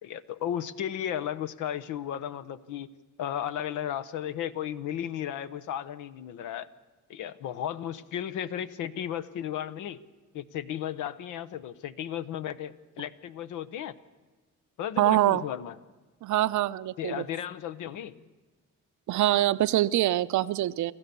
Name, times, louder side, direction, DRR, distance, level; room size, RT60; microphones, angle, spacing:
voice 1, 0.0-2.9 3.2-6.7 7.1-10.0 10.3-14.0 14.8-15.8 17.0-18.1, left 10 dB, 85° left, 14 dB, 0.9 m, -34 dB
voice 2, 15.0-15.4 16.2-17.2 19.1-20.9, right 14 dB, 70° right, 15 dB, 0.6 m, -24 dB
26.5 x 14.5 x 6.9 m, 1.3 s
cardioid pair, 90°, 30 cm